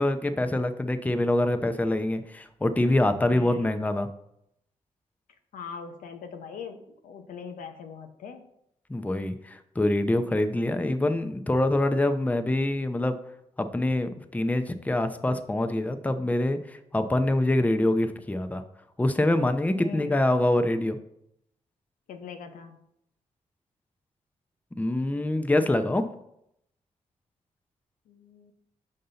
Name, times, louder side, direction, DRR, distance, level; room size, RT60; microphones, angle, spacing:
voice 1, 0.0-4.1 8.9-13.2 13.6-18.6 19.0-21.0 24.8-26.1, left 1 dB, 10° left, 8 dB, 0.6 m, -25 dB
voice 2, 3.3-3.7 5.5-8.4 19.8-20.1 22.1-22.8 28.1-28.5, left 6 dB, 85° left, 6 dB, 0.7 m, -41 dB
5.5 x 5.3 x 3.9 m, 0.77 s
cardioid pair, 60°, 14 cm